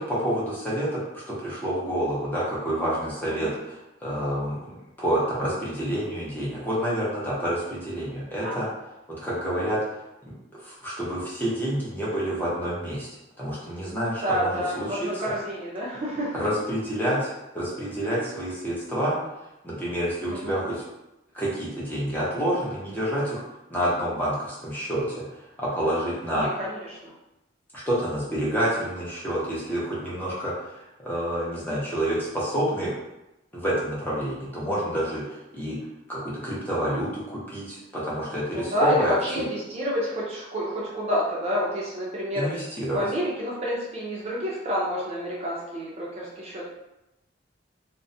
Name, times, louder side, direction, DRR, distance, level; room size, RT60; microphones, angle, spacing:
voice 1, 0.0-8.7 9.2-9.8 10.6-13.1 13.4-15.1 16.4-19.1 19.6-20.8 21.3-23.4 23.7-25.1 25.6-26.5 27.7-32.9 33.5-35.8 36.1-39.4 42.3-43.0, equal, 10° left, -8 dB, 0.7 m, -28 dB
voice 2, 14.2-16.5 20.3-20.6 26.3-27.1 38.5-42.5 42.9-46.7, equal, 35° right, -5 dB, 0.4 m, -29 dB
2.4 x 2.1 x 2.6 m, 0.94 s
head